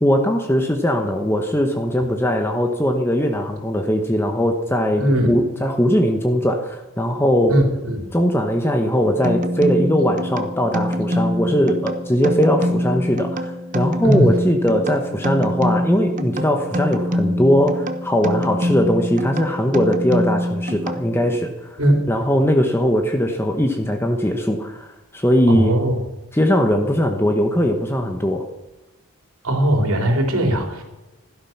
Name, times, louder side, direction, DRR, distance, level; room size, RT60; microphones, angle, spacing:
voice 1, 0.0-7.6 8.1-21.8 22.1-25.7 26.3-28.5, equal, 10° left, 4 dB, 1.0 m, -20 dB
voice 2, 5.0-5.4 7.5-8.1 14.0-14.3 21.8-22.1 25.5-25.9 29.4-30.8, right 1 dB, 75° right, 3 dB, 3.5 m, -19 dB
sound 1, 9.2-21.4, equal, 35° right, 1.0 m, -24 dB
16.0 x 12.5 x 5.9 m, 1.1 s
head